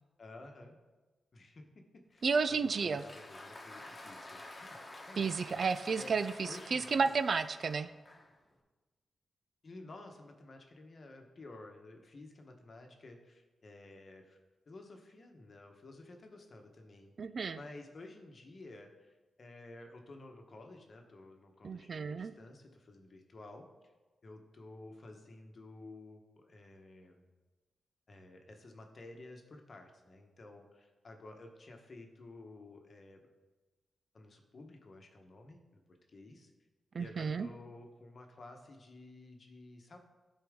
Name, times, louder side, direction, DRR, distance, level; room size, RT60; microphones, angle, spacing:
voice 1, 0.2-0.8 1.3-4.8 5.1-5.3 6.0-6.1 6.4-7.1 9.6-14.4 14.7-17.1 17.6-23.7 24.2-27.3 28.1-33.2 34.1-36.5 37.0-40.0, left 2 dB, 45° left, 3 dB, 1.1 m, -52 dB
Applause, 2.2-8.4, left 2 dB, 20° left, 1.4 m, -50 dB
voice 2, 2.2-3.0 5.2-7.9 17.2-17.6 21.6-22.3 36.9-37.5, right 5 dB, 55° right, 12 dB, 0.4 m, -32 dB
13.0 x 4.5 x 3.7 m, 1.2 s
cardioid pair, 85°, 0 cm